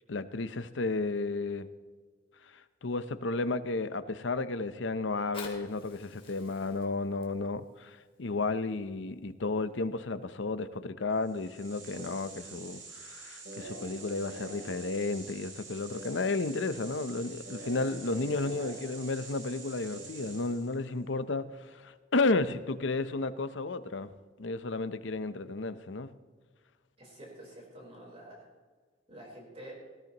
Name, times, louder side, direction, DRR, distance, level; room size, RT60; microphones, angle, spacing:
voice 1, 0.1-1.7 2.8-24.1 24.4-26.1, left 3 dB, 75° left, 0.7 m, -32 dB
Fire, 5.1-10.1 10.7-10.8, left 4 dB, 30° left, 2.4 m, -51 dB
sound 1, 11.2-20.8, right 3 dB, 85° right, 3.5 m, -45 dB
voice 2, 27.0-28.5 29.1-29.7, right 1 dB, 30° right, 4.2 m, -48 dB
19.5 x 13.5 x 3.0 m
head